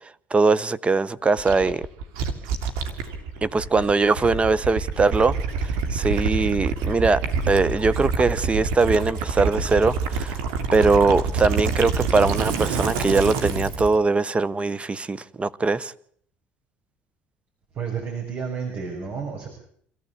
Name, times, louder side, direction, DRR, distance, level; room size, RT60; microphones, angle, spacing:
voice 1, 0.3-1.9 3.4-5.4 5.6-10.4 10.7-15.9, right 3 dB, 25° right, 0.9 m, -21 dB
Gurgling / Liquid, 1.4-14.0, right 4 dB, 80° right, 2.9 m, -27 dB
voice 2, 17.7-19.5, right 6 dB, 50° right, 6.1 m, -31 dB
26.0 x 14.5 x 8.5 m
hypercardioid pair, 75°, 5 cm